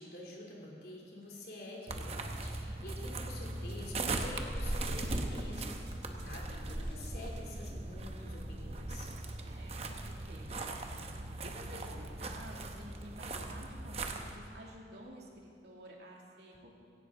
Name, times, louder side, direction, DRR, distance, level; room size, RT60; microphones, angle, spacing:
voice 1, 0.0-9.1, left 1 dB, 60° left, -3 dB, 3.1 m, -48 dB
sound 1, 1.9-14.4, right 2 dB, 35° right, 0.9 m, -39 dB
sound 2, 2.0-12.9, right 1 dB, 90° right, 1.5 m, -59 dB
voice 2, 9.4-10.7 11.4-16.7, right 1 dB, 75° right, -2 dB, 2.5 m, -51 dB
17.0 x 15.5 x 3.8 m, 2.5 s
head